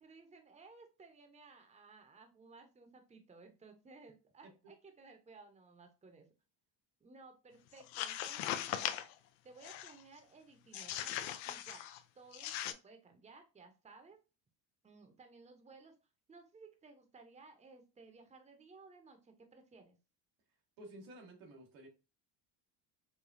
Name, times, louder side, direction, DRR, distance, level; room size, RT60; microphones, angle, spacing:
voice 1, 0.0-6.3 7.0-9.0 9.4-11.9 12.1-14.2 14.8-16.0 16.3-20.0, right 4 dB, 15° right, 5 dB, 0.8 m, -58 dB
sound 1, 7.8-9.1 9.6-10.0 10.7-12.0 12.3-12.7, left 12 dB, 80° left, 0.6 m, -39 dB
voice 2, 20.8-21.9, right 1 dB, 90° right, 0 dB, 1.5 m, -52 dB
5.0 x 2.3 x 2.6 m, 0.30 s
supercardioid pair, 90°, 48 cm